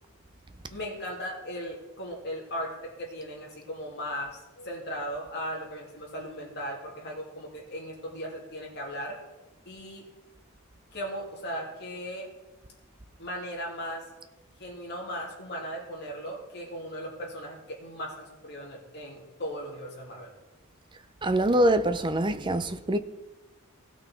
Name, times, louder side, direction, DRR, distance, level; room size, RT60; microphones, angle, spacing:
voice 1, 0.7-9.2 9.7-10.0 10.9-12.3 13.2-14.1 14.6-20.3, equal, 50° left, 2.7 m, -37 dB
voice 2, 21.2-23.0, right 1 dB, 20° right, 0.5 m, -24 dB
16.5 x 6.1 x 4.5 m
head